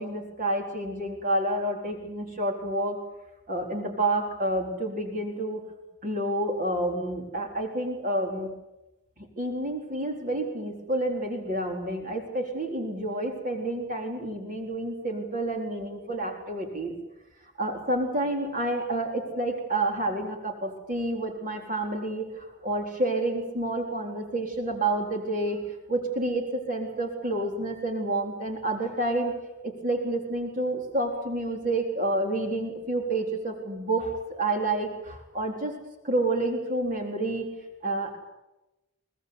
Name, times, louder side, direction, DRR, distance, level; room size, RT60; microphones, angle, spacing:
voice 1, 0.0-3.0 3.5-5.6 6.0-8.5 9.2-16.9 17.6-25.6 25.9-29.3 29.6-35.7 36.0-37.5 37.8-38.2, right 1 dB, 40° right, 2 dB, 4.1 m, -29 dB
23.0 x 18.0 x 9.6 m, 0.98 s
head